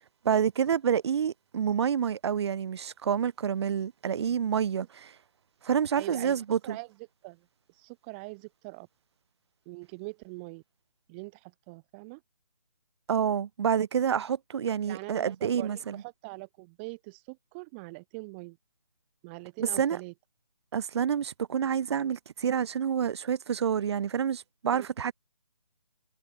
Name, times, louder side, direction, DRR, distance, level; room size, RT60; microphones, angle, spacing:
voice 1, 0.2-5.1 5.6-6.8 13.1-16.0 19.6-20.0 20.7-25.1, right 8 dB, 40° right, 2.6 m, -28 dB
voice 2, 5.9-6.3 6.6-6.9 7.2-7.4 7.7-8.9 9.7-10.6 11.1-12.2 14.9-18.6 19.2-20.1 24.7-24.9, right 29 dB, 15° right, 1.8 m, -42 dB
figure-of-eight pair, 155°, 21 cm